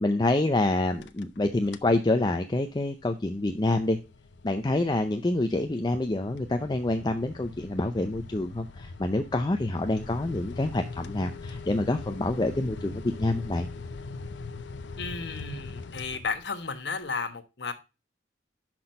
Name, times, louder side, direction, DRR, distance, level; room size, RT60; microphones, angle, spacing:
voice 1, 0.0-4.0 4.4-13.7, left 2 dB, 25° left, 6 dB, 0.5 m, -27 dB
sound 1, 0.8-1.4 1.7-2.0 2.4-16.7, left 3 dB, 85° left, 0.6 m, -42 dB
voice 2, 15.0-17.7, left 4 dB, 70° left, 8 dB, 1.1 m, -33 dB
6.1 x 5.9 x 5.1 m, 0.28 s
head